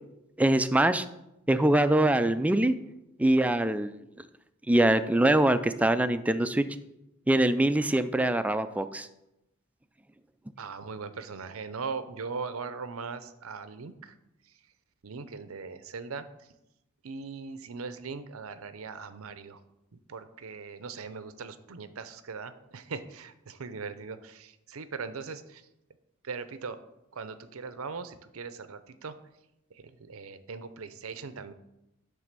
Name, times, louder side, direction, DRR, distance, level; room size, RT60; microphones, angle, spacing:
voice 1, 0.4-1.1 1.5-2.7 3.2-3.9 4.7-6.7 7.3-9.1, right 1 dB, 5° right, 11 dB, 0.3 m, -23 dB
voice 2, 10.6-14.1 14.4-14.5 15.0-16.5 17.0-19.6 19.9-25.7 26.2-26.8 27.1-29.2 29.7-31.5, right 5 dB, 90° right, 12 dB, 0.6 m, -40 dB
9.2 x 3.5 x 6.6 m, 0.89 s
head